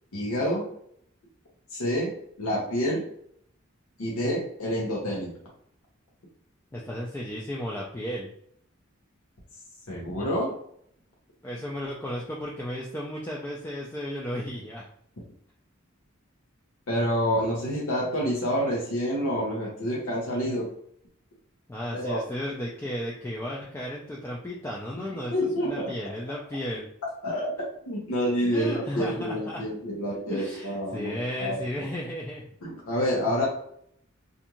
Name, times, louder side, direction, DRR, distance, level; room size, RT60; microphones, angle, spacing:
voice 1, 0.1-0.7 1.7-2.1 2.4-3.0 4.0-5.3 9.9-10.5 16.9-20.7 21.9-22.2 25.3-25.9 27.2-27.5 27.9-31.6 32.6-33.5, equal, 85° left, -4 dB, 0.8 m, -28 dB
voice 2, 6.7-8.3 11.4-14.9 21.7-25.3 25.6-26.9 28.4-29.6 30.3-32.4, equal, 10° left, -4 dB, 0.3 m, -34 dB
2.6 x 2.3 x 2.8 m, 0.67 s
head